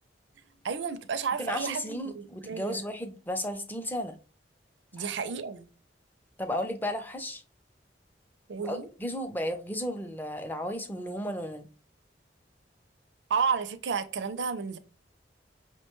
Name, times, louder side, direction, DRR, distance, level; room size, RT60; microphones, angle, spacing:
voice 1, 0.6-2.8 4.9-5.7 8.5-8.9 13.3-14.8, right 6 dB, 80° right, 0.5 m, -31 dB
voice 2, 1.4-4.1 5.0-5.1 6.4-7.4 8.6-11.7, left 1 dB, 10° left, 0.5 m, -34 dB
5.6 x 2.2 x 3.0 m
head